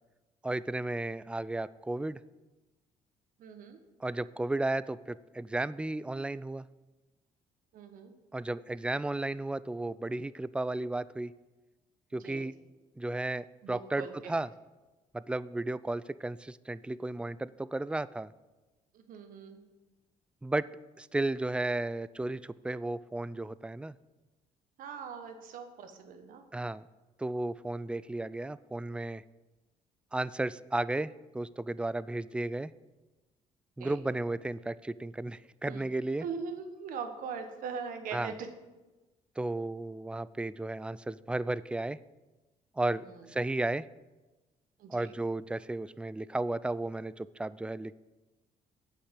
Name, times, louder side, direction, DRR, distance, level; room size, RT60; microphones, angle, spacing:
voice 1, 0.4-2.2 4.0-6.7 8.3-11.3 12.1-12.5 13.0-14.5 15.1-18.3 20.4-20.7 21.0-23.9 26.5-26.8 27.2-29.2 30.1-32.7 33.8-36.2 38.1-38.3 39.4-42.0 42.8-43.8 44.9-47.9, right 2 dB, 5° right, 18 dB, 0.3 m, -34 dB
voice 2, 3.4-3.8 7.7-8.1 12.2-12.5 13.6-14.4 18.9-19.6 24.8-26.5 33.8-34.0 35.6-35.9 36.2-38.5 43.0-43.2 44.8-45.1, right 6 dB, 70° right, 6 dB, 1.3 m, -41 dB
8.3 x 5.8 x 7.4 m, 1.1 s
supercardioid pair, 70°, 15 cm